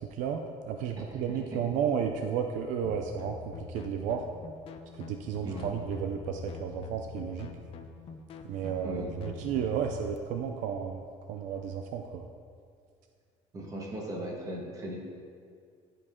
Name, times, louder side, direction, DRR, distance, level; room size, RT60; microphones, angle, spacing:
voice 1, 0.1-4.2 4.9-7.5 8.5-11.0 11.3-12.2, right 7 dB, 70° right, 4 dB, 0.6 m, -33 dB
voice 2, 1.0-1.4 5.4-5.8 8.8-9.4 13.5-15.0, right 1 dB, 25° right, -1 dB, 1.6 m, -38 dB
sound 1, 2.8-10.2, left 6 dB, 45° left, 0.6 m, -45 dB
14.0 x 5.4 x 3.7 m, 2.2 s
cardioid pair, 150°, 13 cm